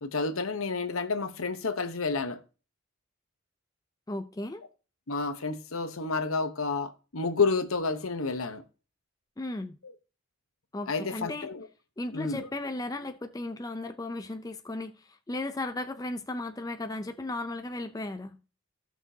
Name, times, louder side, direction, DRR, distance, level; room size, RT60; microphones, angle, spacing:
voice 1, 0.0-2.4 5.1-8.6 9.8-9.9 10.9-11.7 12.1-12.5, left 4 dB, 75° left, 1.0 m, -30 dB
voice 2, 4.1-4.6 9.4-9.8 10.7-11.5 12.0-18.4, left 2 dB, 15° left, 0.4 m, -35 dB
16.0 x 6.0 x 2.8 m
head